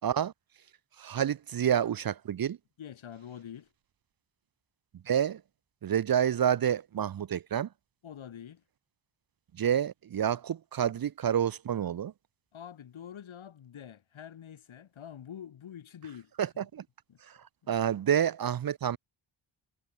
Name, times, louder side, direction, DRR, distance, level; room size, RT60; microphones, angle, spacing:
voice 1, 0.0-0.3 1.0-2.6 5.1-5.4 5.8-7.7 9.5-12.1 16.4-16.8 17.3-17.4 17.7-19.0, right 9 dB, 50° right, 0.6 m, -28 dB
voice 2, 2.8-3.7 8.0-8.6 12.5-16.3 17.1-17.2 17.6-17.7, left 9 dB, 75° left, 2.0 m, -46 dB
wide cardioid pair, 165°, 48 cm